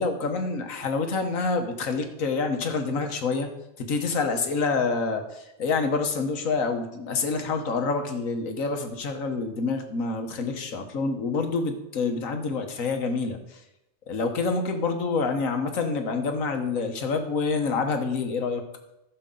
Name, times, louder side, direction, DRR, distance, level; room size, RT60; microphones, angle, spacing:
voice 1, 0.0-3.5 3.8-13.6 14.1-18.6, left 4 dB, 85° left, 6 dB, 1.6 m, -27 dB
14.5 x 6.7 x 3.8 m, 0.89 s
omnidirectional pair, 1.4 m